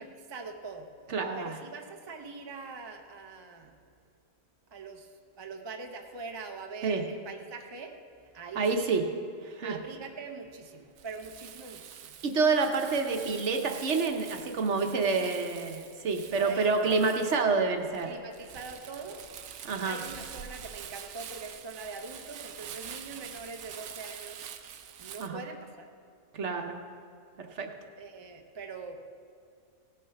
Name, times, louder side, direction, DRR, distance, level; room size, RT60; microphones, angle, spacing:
voice 1, 0.0-0.9 1.4-3.7 4.7-8.0 8.3-9.0 9.6-12.1 15.2-15.4 16.4-17.3 18.0-19.2 19.8-24.4 25.0-25.9 28.0-29.1, right 4 dB, 25° right, 3 dB, 0.5 m, -43 dB
voice 2, 1.1-1.5 6.8-7.0 8.6-9.0 9.5-9.8 12.2-18.1 19.6-20.0 25.2-25.4 26.3-26.8 27.4-27.7, right 4 dB, 55° right, 4 dB, 1.1 m, -28 dB
Crumpling crinkling, 10.9-25.3, right 8 dB, 85° right, 1.2 m, -46 dB
17.0 x 6.8 x 5.8 m, 2.4 s
omnidirectional pair, 1.5 m